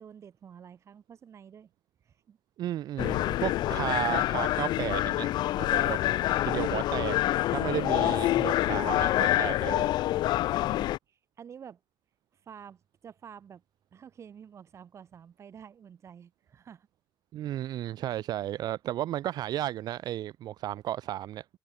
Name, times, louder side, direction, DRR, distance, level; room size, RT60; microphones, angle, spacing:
voice 1, 0.0-1.7 2.0-2.4 5.9-6.5 7.7-7.8 10.5-11.8 12.5-13.6 13.9-16.9 18.5-18.6, right 8 dB, 40° right, 6.7 m, -50 dB
voice 2, 2.6-5.3 5.6-6.0 6.5-7.2 7.5-10.0 17.3-21.4, right 13 dB, 65° right, 1.2 m, -33 dB
sound 1, 3.0-11.0, left 15 dB, 75° left, 0.6 m, -27 dB
cardioid pair, 155°, 8 cm